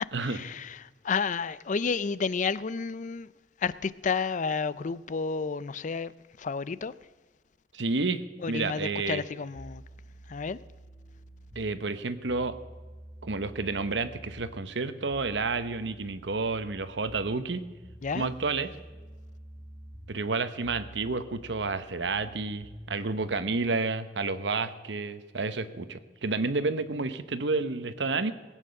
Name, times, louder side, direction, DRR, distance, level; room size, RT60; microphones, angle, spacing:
voice 1, 0.0-3.3 3.6-6.1 6.4-6.9 8.4-9.8 10.3-10.6 18.0-18.3, left 5 dB, 45° left, 0.5 m, -31 dB
voice 2, 7.7-9.2 11.5-12.5 13.2-17.7 18.1-18.7 20.1-28.3, right 3 dB, 80° right, 1.0 m, -30 dB
sound 1, 9.5-23.4, right 1 dB, 15° right, 1.6 m, -48 dB
19.5 x 9.1 x 6.5 m
head